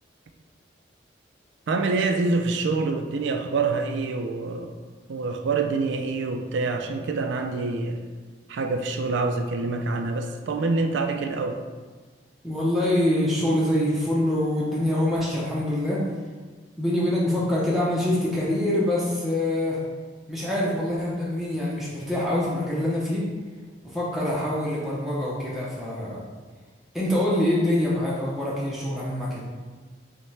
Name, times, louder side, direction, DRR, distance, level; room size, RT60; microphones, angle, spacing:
voice 1, 1.7-4.8 5.1-8.0 8.5-11.6, right 3 dB, 70° right, 5 dB, 0.3 m, -26 dB
voice 2, 12.4-16.0 16.8-19.8 20.3-23.3 23.8-26.2 26.9-29.4, left 1 dB, ahead, -7 dB, 0.5 m, -25 dB
5.4 x 2.1 x 3.2 m, 1.4 s
head